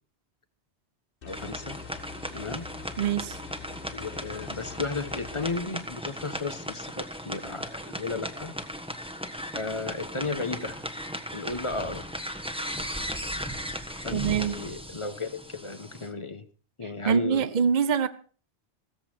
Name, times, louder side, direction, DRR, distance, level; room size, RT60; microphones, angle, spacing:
sound 1, 1.2-5.6, left 7 dB, 55° left, 1.3 m, -45 dB
voice 1, 1.2-1.8 2.3-2.7 3.9-8.5 9.5-10.9 11.3-12.1 13.9-16.5 16.8-17.5, left 3 dB, 30° left, 1.1 m, -34 dB
sound 2, 1.3-16.1, equal, 5° right, 1.3 m, -37 dB
voice 2, 3.0-3.4 14.1-14.6 17.1-18.1, right 7 dB, 45° right, 0.9 m, -24 dB
17.0 x 14.0 x 4.5 m
omnidirectional pair, 1.2 m